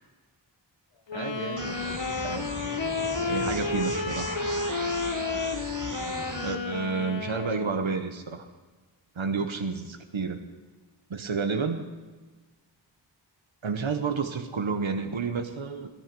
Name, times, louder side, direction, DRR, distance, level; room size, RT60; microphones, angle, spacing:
Wind instrument woodwind instrument, 1.1-7.9, left 4 dB, 70° left, 1.2 m, -31 dB
voice 1, 1.1-2.5 3.3-4.4 6.4-8.5 9.1-10.4 11.1-11.8 13.6-15.9, right 5 dB, 80° right, 7 dB, 1.1 m, -30 dB
sound 1, 1.6-6.6, right 2 dB, 40° right, 1.8 m, -37 dB
18.5 x 13.5 x 5.3 m, 1.3 s
wide cardioid pair, 45°, 46 cm